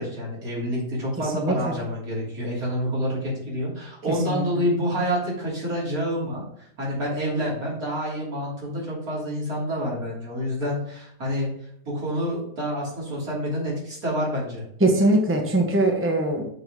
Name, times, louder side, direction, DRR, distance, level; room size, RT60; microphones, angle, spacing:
voice 1, 0.0-11.5 11.9-14.6, equal, 85° right, -5 dB, 3.3 m, -28 dB
voice 2, 1.4-1.8 4.3-4.4 14.8-16.4, right 1 dB, 10° right, 1 dB, 1.1 m, -21 dB
6.7 x 3.8 x 6.1 m, 0.70 s
omnidirectional pair, 1.5 m